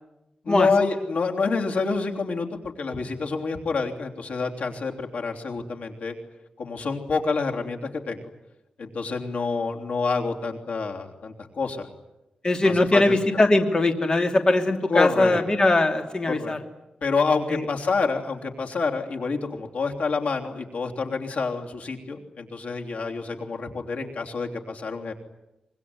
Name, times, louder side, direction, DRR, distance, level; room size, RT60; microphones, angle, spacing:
voice 1, 0.4-6.1 6.6-8.2 8.8-11.9 12.6-13.2 14.9-15.4 16.3-16.6 17.0-25.1, left 4 dB, 85° left, 2 dB, 3.3 m, -27 dB
voice 2, 12.4-16.6 17.5-17.6, left 2 dB, 35° left, 5 dB, 2.9 m, -21 dB
25.0 x 23.5 x 9.8 m, 0.94 s
wide cardioid pair, 115°, 2 cm